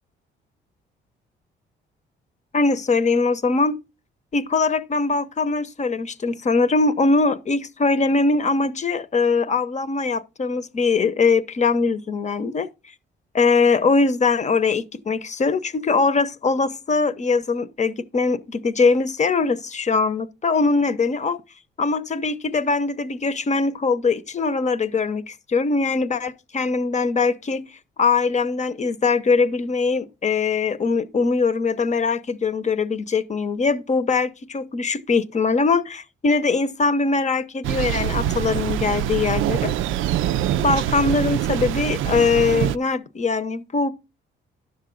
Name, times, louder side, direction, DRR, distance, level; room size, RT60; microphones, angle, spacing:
voice 1, 2.5-3.8 4.3-12.7 13.3-21.4 21.8-27.6 28.0-39.7 40.6-43.9, left 4 dB, 35° left, 0.8 m, -21 dB
Thunder, 37.6-42.8, right 11 dB, 85° right, 0.5 m, -24 dB
10.5 x 6.8 x 3.8 m
cardioid pair, 90°, 20 cm